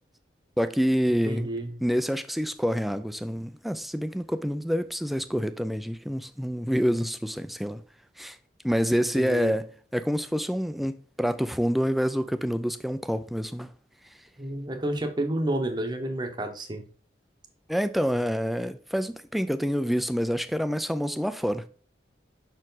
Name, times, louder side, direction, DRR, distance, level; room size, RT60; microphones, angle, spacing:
voice 1, 0.6-1.5 1.8-7.8 8.2-8.4 8.6-13.7 17.7-21.7, equal, ahead, 0.3 m, -27 dB
voice 2, 1.1-1.7 9.1-9.5 14.4-16.8, right 1 dB, 25° right, 0.8 m, -30 dB
6.0 x 4.5 x 3.9 m
head